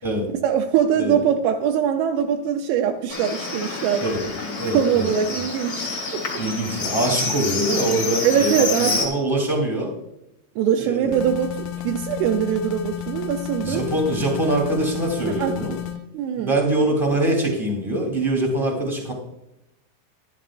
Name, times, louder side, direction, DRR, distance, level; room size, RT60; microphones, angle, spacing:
voice 1, 0.4-4.0 4.7-6.2 8.2-9.0 10.6-13.9 15.4-15.5 16.1-16.5, right 8 dB, 80° right, 2 dB, 3.2 m, -22 dB
Livestock farm animals working animals, 3.1-9.1, left 3 dB, 50° left, 1.1 m, -28 dB
voice 2, 4.6-5.1 6.4-9.9 10.8-11.1 13.6-15.7 16.3-19.1, right 1 dB, 10° left, 0 dB, 1.2 m, -23 dB
sound 1, 11.1-16.0, left 11 dB, 85° left, 3.3 m, -32 dB
14.0 x 11.0 x 2.5 m, 0.85 s
omnidirectional pair, 5.8 m